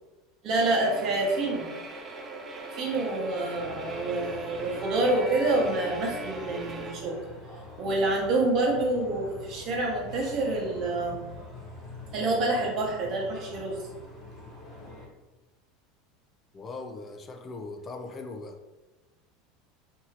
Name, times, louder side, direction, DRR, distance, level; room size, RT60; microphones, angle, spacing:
voice 1, 0.4-1.6 2.7-7.2 7.8-11.2 12.1-13.9, right 2 dB, 50° right, -1 dB, 0.9 m, -27 dB
sound 1, 0.5-6.9, right 1 dB, 25° right, 0.6 m, -38 dB
sound 2, 3.5-15.1, left 2 dB, 55° left, 1.0 m, -45 dB
voice 2, 16.5-18.6, left 3 dB, 30° left, 4 dB, 0.3 m, -39 dB
2.7 x 2.6 x 2.9 m, 1.2 s
hypercardioid pair, 90°, 0 cm